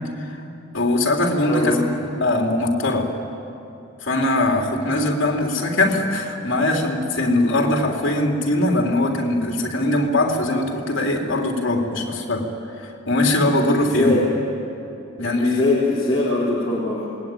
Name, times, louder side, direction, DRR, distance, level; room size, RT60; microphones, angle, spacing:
voice 1, 0.7-1.9 2.2-3.1 4.0-12.5 12.8-14.1 15.2-15.6, left 1 dB, 60° left, 1 dB, 3.5 m, -21 dB
voice 2, 1.4-1.8 13.8-14.2 15.2-17.1, left 2 dB, 25° left, -8 dB, 3.9 m, -22 dB
28.0 x 21.0 x 9.4 m, 2.8 s
head